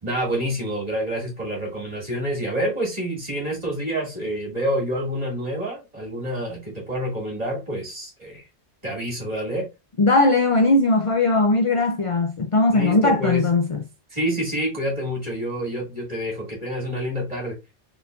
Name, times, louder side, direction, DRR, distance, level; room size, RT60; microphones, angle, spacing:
voice 1, 0.0-8.4 8.8-9.7 12.7-13.4 14.1-17.6, equal, 35° right, 2.4 m, -27 dB
voice 2, 10.0-13.8, left 2 dB, 45° left, 0.4 m, -19 dB
4.3 x 3.9 x 2.4 m
omnidirectional pair, 1.2 m